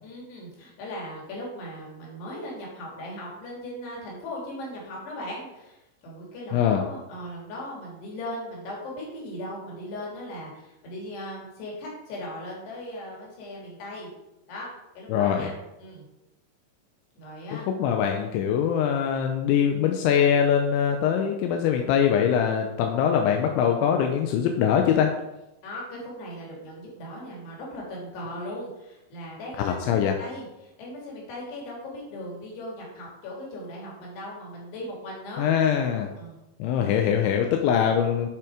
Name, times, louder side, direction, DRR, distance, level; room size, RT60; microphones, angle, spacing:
voice 1, 0.0-14.1 14.5-14.7 14.9-16.0 17.1-17.7 25.6-35.5 36.2-36.4, left 1 dB, 60° left, -3 dB, 4.8 m, -38 dB
voice 2, 6.5-6.8 15.1-15.5 17.5-25.1 29.6-30.2 35.4-36.1 36.6-38.3, left 8 dB, 80° left, 3 dB, 2.9 m, -23 dB
10.5 x 5.8 x 4.9 m, 0.93 s
omnidirectional pair, 5.8 m